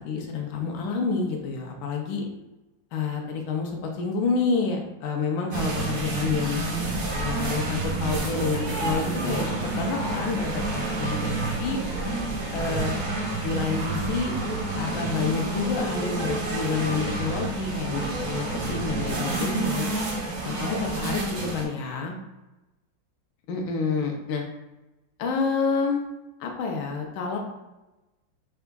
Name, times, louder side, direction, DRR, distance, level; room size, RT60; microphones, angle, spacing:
voice 1, 0.0-2.2 2.9-6.6 7.2-11.8 12.5-13.0 13.4-14.3 14.7-19.9 20.4-22.1 23.5-24.4 25.2-26.0 26.4-27.4, left 4 dB, 85° left, 1 dB, 1.4 m, -28 dB
sound 1, 5.5-21.6, right 2 dB, 60° right, 1.2 m, -29 dB
4.8 x 3.4 x 2.2 m, 1.0 s
omnidirectional pair, 2.1 m